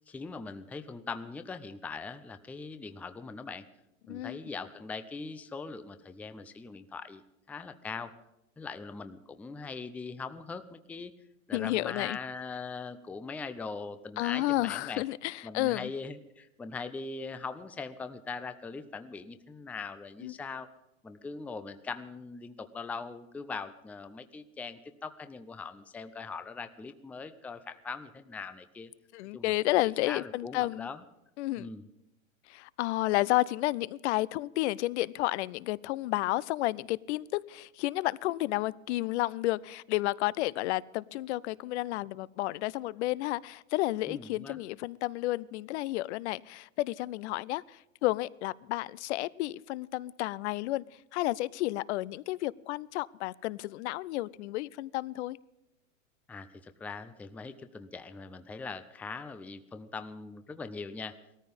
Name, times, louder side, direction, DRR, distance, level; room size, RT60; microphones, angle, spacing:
voice 1, 0.1-3.7 4.1-8.1 8.6-11.1 11.5-15.0 15.4-20.7 21.0-28.9 29.3-29.5 29.8-31.0 31.6-31.8 44.1-44.6 56.3-61.2, left 4 dB, 5° left, 11 dB, 0.5 m, -41 dB
voice 2, 4.1-4.4 11.5-12.2 14.2-15.9 20.2-20.4 29.1-30.9 31.4-31.7 32.5-50.8 51.1-55.4, left 18 dB, 55° left, 22 dB, 0.6 m, -31 dB
17.5 x 14.0 x 5.3 m, 0.89 s
hypercardioid pair, 130°, 41 cm